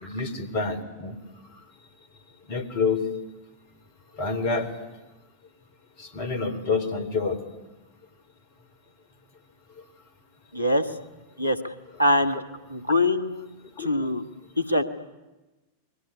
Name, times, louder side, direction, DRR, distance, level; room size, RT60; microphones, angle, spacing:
voice 1, 0.0-1.2 2.5-3.0 4.2-4.7 6.0-7.4 13.8-13.9, left 4 dB, 45° left, 13 dB, 3.4 m, -27 dB
voice 2, 10.5-10.9 11.4-11.7 12.0-12.4 12.7-13.5 13.8-14.2 14.6-14.8, left 1 dB, 90° right, 11 dB, 1.5 m, -23 dB
28.0 x 22.0 x 9.8 m, 1.1 s
figure-of-eight pair, 90°, 0 cm